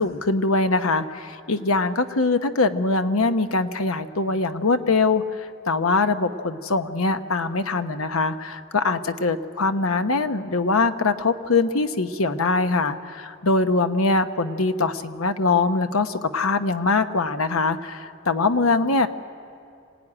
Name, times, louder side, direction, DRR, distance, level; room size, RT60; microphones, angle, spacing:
voice 1, 0.0-19.1, left 3 dB, 90° left, 9 dB, 1.0 m, -22 dB
26.0 x 17.5 x 9.9 m, 2.5 s
head